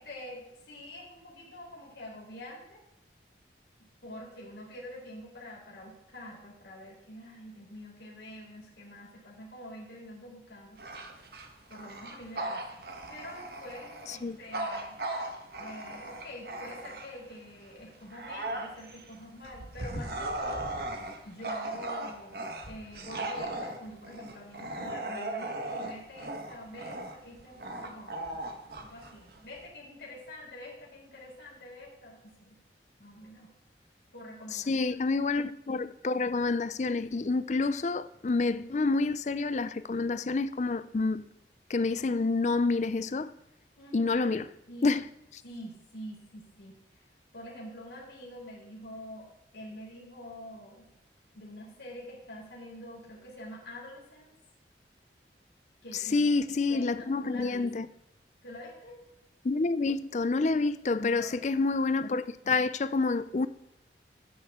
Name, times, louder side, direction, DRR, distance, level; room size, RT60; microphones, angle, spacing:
voice 1, 0.0-2.8 4.0-10.8 11.7-12.8 13.1-15.0 15.6-20.7 21.2-28.2 28.5-32.6 33.0-33.5 34.1-35.0 43.8-44.4 44.7-44.9 45.4-46.7 47.3-49.3 49.5-50.9 51.3-54.3 55.8-56.3 56.7-57.6 58.4-59.0 61.0-61.5, left 1 dB, 75° left, 4.0 m, -46 dB
Bark / Growling, 10.8-17.3 17.8-29.7, right 2 dB, 55° right, 1.4 m, -38 dB
voice 2, 34.5-41.2 41.7-43.3 43.9-44.5 44.8-45.0 55.9-57.9 59.4-63.5, left 3 dB, 40° left, 0.4 m, -28 dB
13.5 x 9.5 x 3.7 m
head